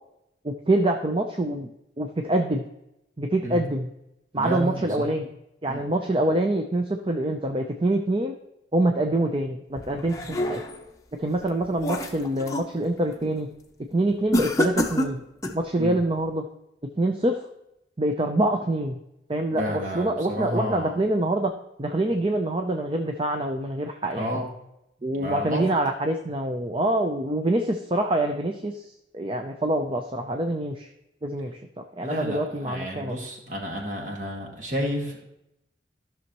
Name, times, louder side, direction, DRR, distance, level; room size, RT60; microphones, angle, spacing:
voice 1, 0.4-1.7 2.0-2.7 3.2-3.9 4.3-5.3 5.6-8.3 8.7-10.6 11.1-13.5 13.9-15.2 15.5-16.4 17.0-17.4 18.0-19.0 19.3-21.5 21.8-24.4 25.0-30.9 31.2-33.1, right 1 dB, 30° right, 5 dB, 0.5 m, -25 dB
voice 2, 4.3-5.1 5.7-5.8 15.8-16.0 19.5-21.0 22.1-22.2 24.1-24.5 25.1-25.7 32.0-35.2, equal, 45° right, 0 dB, 1.8 m, -31 dB
sound 1, 9.8-10.9 11.4-12.7 13.1-13.5 14.3-15.7, left 1 dB, 20° left, 0.7 m, -28 dB
14.0 x 6.3 x 3.0 m, 0.84 s
head